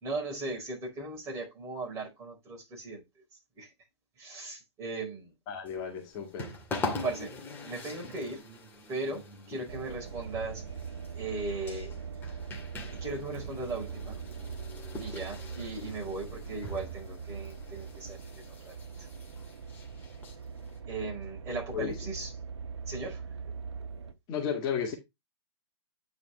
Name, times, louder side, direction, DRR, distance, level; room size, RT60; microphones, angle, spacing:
voice 1, 0.0-3.0 3.3-3.7 4.2-5.3 6.7-7.3 7.6-8.4 8.9-11.9 13.0-14.2 15.0-18.7 19.0-19.1 20.9-22.3 22.9-23.2, right 3 dB, 20° right, 4.5 m, -38 dB
voice 2, 5.5-6.5 21.7-21.9 24.3-25.0, left 7 dB, 30° left, 1.9 m, -33 dB
sound 1, 5.7-20.8, left 2 dB, 15° left, 2.1 m, -43 dB
sound 2, 9.7-24.1, right 6 dB, 80° right, 1.2 m, -42 dB
9.4 x 5.1 x 3.2 m
hypercardioid pair, 140°, 14 cm